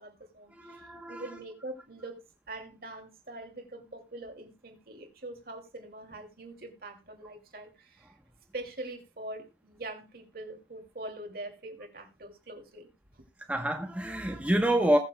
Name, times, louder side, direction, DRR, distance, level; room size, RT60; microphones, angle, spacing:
voice 1, 0.0-2.2 2.5-8.1 8.5-12.9 13.2-13.3, right 2 dB, 55° right, 2.5 m, -43 dB
voice 2, 0.5-1.2 13.5-15.0, right 1 dB, 10° right, 1.0 m, -27 dB
20.5 x 7.1 x 2.2 m
head